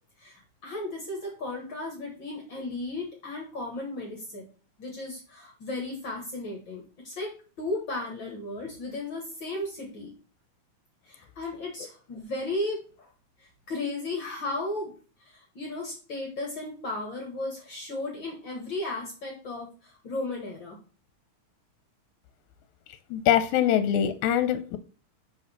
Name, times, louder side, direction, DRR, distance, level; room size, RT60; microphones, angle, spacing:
voice 1, 0.2-4.4 4.8-10.1 11.0-13.1 13.4-14.9 15.2-20.8, left 2 dB, 50° left, 0 dB, 1.7 m, -35 dB
voice 2, 23.1-24.8, left 10 dB, 85° left, 11 dB, 2.0 m, -23 dB
6.2 x 5.0 x 4.2 m, 0.38 s
omnidirectional pair, 3.4 m